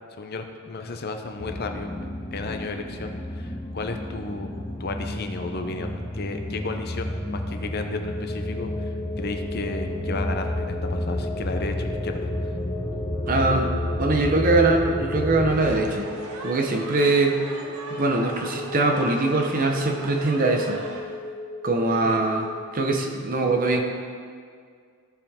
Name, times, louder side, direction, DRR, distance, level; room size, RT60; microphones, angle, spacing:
voice 1, 0.2-4.5 4.8-12.3 22.0-22.2, left 3 dB, 45° left, 5 dB, 0.6 m, -33 dB
sound 1, 1.4-15.8, left 1 dB, ahead, 1.0 m, -31 dB
sound 2, 7.8-22.6, left 2 dB, 80° left, 2.3 m, -37 dB
voice 2, 13.3-13.7 14.0-16.1 16.4-17.4 17.9-20.8 21.6-23.8, right 2 dB, 40° right, 3 dB, 0.8 m, -22 dB
sound 3, 15.5-21.0, right 2 dB, 80° right, 1.0 m, -38 dB
15.0 x 5.3 x 3.6 m, 2.1 s
head